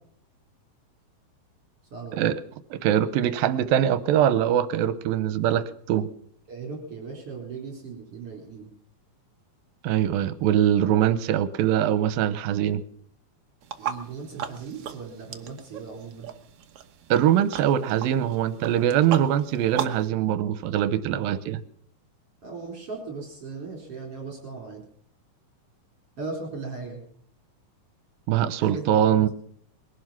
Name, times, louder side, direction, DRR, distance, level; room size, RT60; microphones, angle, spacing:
voice 1, 1.9-2.3 6.5-8.7 13.8-16.3 21.2-21.3 22.4-24.8 26.2-27.0 28.6-29.1, right 4 dB, 40° right, 0 dB, 5.0 m, -37 dB
voice 2, 2.7-6.1 9.8-12.8 17.1-21.6 28.3-29.3, right 10 dB, 85° right, 14 dB, 2.6 m, -23 dB
sound 1, 13.6-20.1, right 9 dB, 65° right, 1.5 m, -37 dB
21.0 x 11.5 x 5.9 m, 0.62 s
omnidirectional pair, 4.2 m